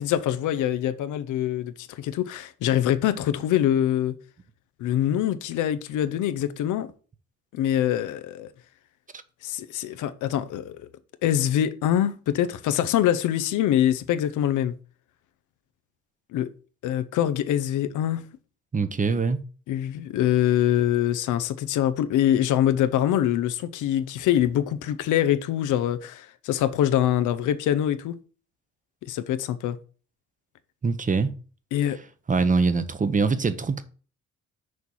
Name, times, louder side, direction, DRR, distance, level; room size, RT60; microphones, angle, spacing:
voice 1, 0.0-4.2 4.8-6.9 7.5-8.5 9.4-10.7 11.2-14.7 16.3-16.5 16.8-18.2 19.7-28.1 29.0-29.8 31.7-32.0, left 11 dB, 85° left, 0.7 m, -24 dB
voice 2, 18.7-19.4 30.8-31.3 32.3-33.8, right 4 dB, 25° right, 0.8 m, -23 dB
6.4 x 4.6 x 5.4 m
cardioid pair, 90°, 30 cm